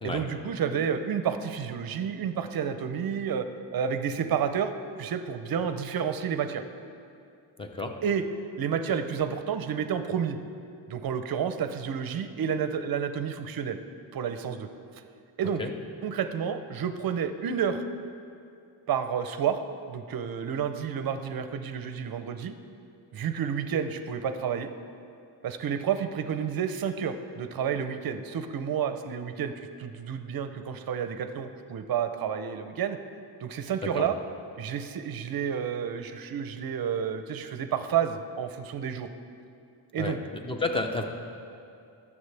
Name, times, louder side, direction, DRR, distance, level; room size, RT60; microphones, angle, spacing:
voice 1, 0.0-3.5 3.7-4.7 5.0-6.6 8.0-8.3 8.6-10.4 10.9-13.8 14.1-14.7 15.4-15.7 16.0-17.8 18.9-19.6 19.9-22.5 23.1-24.7 25.4-33.0 33.4-34.2 34.6-39.1 39.9-40.2, right 7 dB, 50° right, 9 dB, 0.6 m, -30 dB
voice 2, 7.6-8.0 15.6-15.7 34.0-34.1 40.0-40.2 40.4-41.0, left 3 dB, 10° left, 4 dB, 0.6 m, -30 dB
20.5 x 7.2 x 3.3 m, 2.5 s
wide cardioid pair, 180°, 45 cm